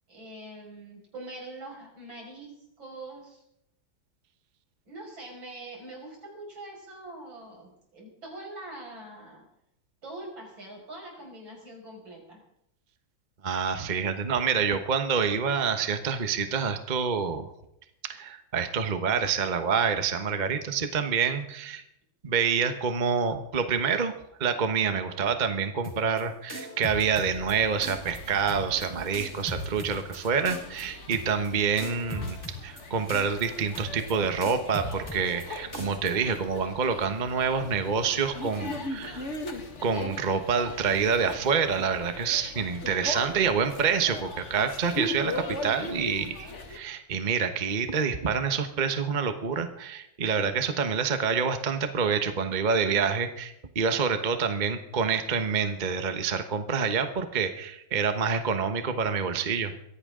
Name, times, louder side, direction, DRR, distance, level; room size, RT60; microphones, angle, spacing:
voice 1, 0.1-2.5 2.8-3.4 4.9-9.5 10.0-12.4, right 2 dB, 80° right, -1 dB, 6.5 m, -43 dB
voice 2, 13.4-17.5 18.0-21.8 22.2-24.1 24.4-39.2 39.8-59.7, right 6 dB, 30° right, 8 dB, 1.0 m, -27 dB
sound 1, 25.8-26.2 26.5-27.5 27.8-28.2 28.5-28.9 29.1-30.2 30.4-30.8 31.1-31.5 31.8-32.8 33.1-33.5 33.7-34.1 34.4-35.4 35.7-36.1, equal, 10° left, 4.5 m, -38 dB
sound 2, 27.3-46.8, left 2 dB, 40° left, 2.0 m, -39 dB
23.0 x 16.0 x 3.8 m, 0.80 s
omnidirectional pair, 2.1 m